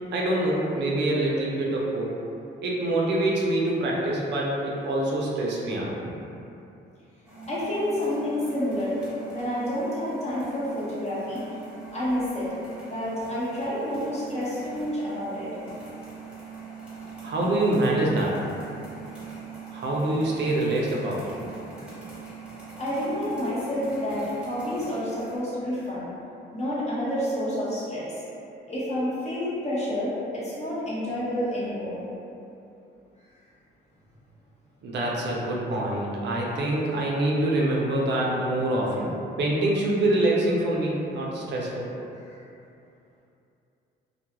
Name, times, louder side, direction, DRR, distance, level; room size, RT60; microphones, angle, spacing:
voice 1, 0.0-2.1 2.6-6.1 17.2-18.4 19.7-21.5 34.8-39.1 39.4-41.9, right 1 dB, 60° right, -4 dB, 0.5 m, -25 dB
sound 1, 7.2-25.4, right 5 dB, 5° right, 0.9 m, -42 dB
voice 2, 7.5-8.9 9.3-11.4 11.9-12.5 12.9-15.5 21.7-21.9 22.8-26.1 26.5-28.2 28.7-32.0, left 1 dB, 35° left, -9 dB, 0.9 m, -29 dB
2.2 x 2.2 x 2.8 m, 2.7 s
cardioid pair, 90°, 20 cm